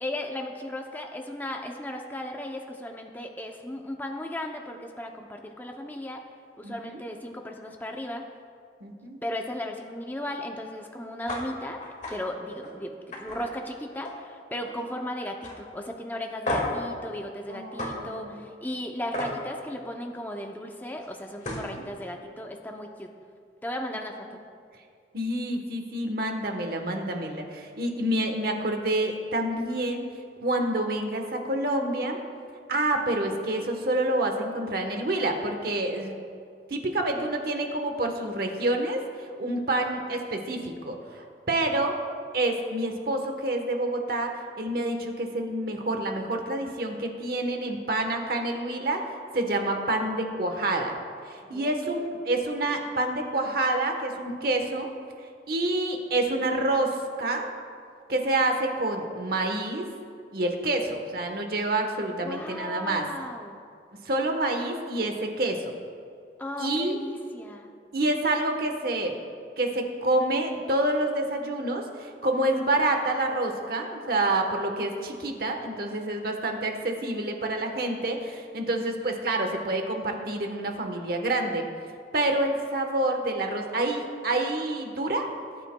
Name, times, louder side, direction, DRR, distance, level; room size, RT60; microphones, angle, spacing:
voice 1, 0.0-6.2 6.6-8.2 9.2-11.8 12.1-23.1 23.6-24.4 51.5-52.0 62.2-63.6 66.4-67.7, left 1 dB, 10° left, 2 dB, 0.5 m, -36 dB
voice 2, 6.6-7.0 8.8-9.2 17.5-18.5 21.7-21.8 25.1-30.1 30.4-32.2 32.7-36.2 36.7-39.0 39.4-42.0 42.3-49.0 49.3-51.0 51.3-54.9 55.5-57.5 58.1-59.9 60.3-63.1 64.0-65.7 66.6-67.0 67.9-69.2 69.6-81.7 82.1-85.3, right 1 dB, 55° right, 4 dB, 1.1 m, -28 dB
sound 1, 11.3-11.4 11.8-12.1 12.5-12.7 13.1-14.3 14.6-15.0 15.4-15.5 16.4-16.8 17.8-17.9 19.1-19.3 21.0-21.1 21.4-21.7, left 1 dB, 45° left, 1.9 m, -32 dB
18.5 x 9.0 x 2.2 m, 2.3 s
head